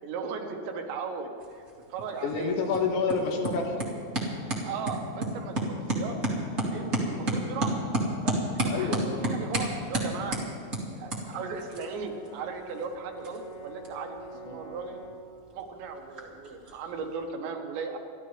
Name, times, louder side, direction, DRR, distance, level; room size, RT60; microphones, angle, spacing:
voice 1, 0.0-1.6 1.9-2.6 4.6-6.2 6.7-7.8 8.2-10.4 10.9-14.2 14.4-15.0 15.5-18.0, right 5 dB, 75° right, 3 dB, 3.3 m, -37 dB
sound 1, 1.4-17.3, right 1 dB, 35° right, 1.2 m, -33 dB
voice 2, 2.2-3.8 7.1-7.3 8.7-9.2 11.3-11.5 14.3-14.6, left 4 dB, 75° left, 1 dB, 3.7 m, -29 dB
Brass instrument, 11.0-15.3, equal, 60° left, 4.7 m, -46 dB
28.0 x 12.0 x 3.3 m, 2.4 s
omnidirectional pair, 5.5 m